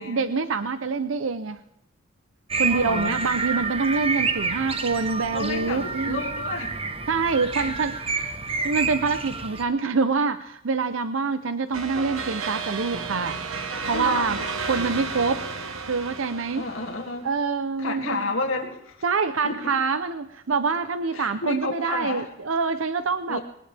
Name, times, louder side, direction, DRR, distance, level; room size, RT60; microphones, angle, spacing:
voice 1, 0.0-1.6 2.6-6.2 7.1-8.3 8.6-13.4 13.9-15.5 15.9-16.6 17.2-18.3 19.0-23.4, right 4 dB, 70° right, 11 dB, 0.7 m, -26 dB
sound 1, 2.5-9.6, right 4 dB, 30° right, 1.1 m, -29 dB
voice 2, 2.7-3.2 5.3-6.8 7.6-7.7 13.9-14.4 16.6-17.3 17.8-19.0 19.4-19.5 21.1-22.3 23.3-23.4, left 3 dB, 75° left, 0 dB, 2.5 m, -31 dB
sound 2, 11.7-17.2, right 4 dB, 90° right, 1.4 m, -32 dB
21.0 x 17.5 x 3.5 m, 0.83 s
head